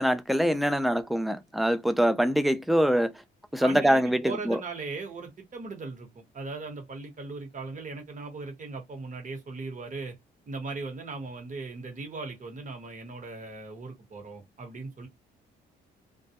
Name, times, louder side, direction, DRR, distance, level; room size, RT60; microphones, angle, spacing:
voice 1, 0.0-3.1 3.5-4.6, equal, ahead, 0.4 m, -24 dB
voice 2, 3.6-10.2 10.5-15.1, right 3 dB, 40° right, 1.1 m, -38 dB
2.2 x 2.1 x 2.8 m
cardioid pair, 90°, 20 cm